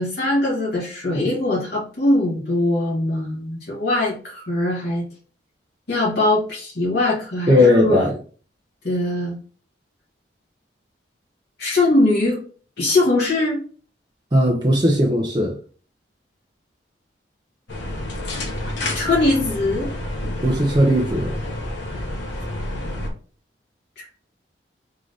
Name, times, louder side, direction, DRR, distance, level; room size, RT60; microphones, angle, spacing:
voice 1, 0.0-5.1 5.9-8.1 8.8-9.4 11.6-12.4 12.8-13.6 18.9-19.9 24.0-24.1, left 2 dB, 55° left, 1.7 m, -21 dB
voice 2, 7.5-8.1 14.3-15.6 20.4-21.3, left 1 dB, 25° right, 0.6 m, -17 dB
sound 1, 17.7-23.1, left 1 dB, 85° left, 1.3 m, -29 dB
3.7 x 3.7 x 3.5 m
head